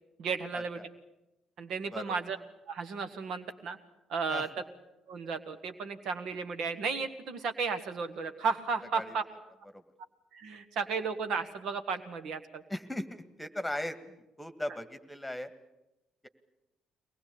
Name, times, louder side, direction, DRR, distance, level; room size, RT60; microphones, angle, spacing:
voice 1, 0.2-0.8 1.6-2.4 2.7-3.8 4.1-4.5 5.1-9.2 10.3-12.6, right 5 dB, 60° right, 9 dB, 1.5 m, -34 dB
voice 2, 12.7-15.5, left 1 dB, 5° left, 11 dB, 1.9 m, -38 dB
23.0 x 20.0 x 8.6 m, 0.95 s
figure-of-eight pair, 45°, 0 cm